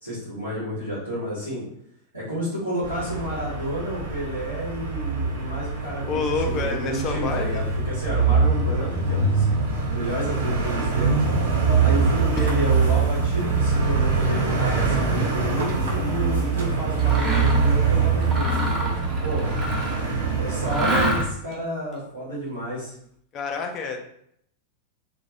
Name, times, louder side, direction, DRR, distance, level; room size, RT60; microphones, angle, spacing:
voice 1, 0.0-1.6 2.1-9.4 9.8-11.2 11.8-18.9 19.2-19.5 20.4-22.9, right 1 dB, 85° right, -8 dB, 0.9 m, -31 dB
sound 1, 2.8-21.2, right 4 dB, 65° right, 0.6 m, -23 dB
voice 2, 6.0-7.6 12.4-12.5 23.3-24.0, left 4 dB, 35° left, 3 dB, 0.3 m, -28 dB
Mechanisms, 17.0-17.7 18.2-20.1 20.6-21.5, right 1 dB, 20° right, 0.6 m, -28 dB
2.3 x 2.1 x 2.6 m, 0.70 s
figure-of-eight pair, 90°, 0 cm